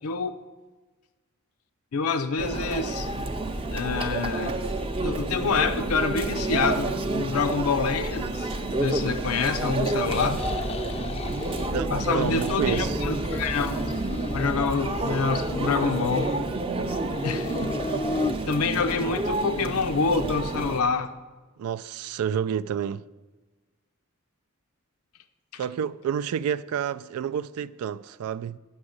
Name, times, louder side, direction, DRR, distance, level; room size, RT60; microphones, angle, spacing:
voice 1, 0.0-0.3 1.9-3.1 3.7-4.6 5.0-8.5 8.8-10.4 11.9-13.8 14.3-16.3 17.2-17.9 18.5-21.1 25.5-25.6, left 5 dB, 90° left, 0.6 m, -27 dB
Conversation / Chatter / Crowd, 2.4-20.8, right 2 dB, 25° right, 0.5 m, -29 dB
sound 1, 10.1-11.7 12.0-12.9 13.1-14.5 14.9-16.5 16.8-18.4, left 3 dB, 30° left, 0.4 m, -35 dB
voice 2, 11.7-13.0 21.6-23.1 25.6-28.6, right 8 dB, 90° right, 0.3 m, -29 dB
9.6 x 6.3 x 6.5 m
head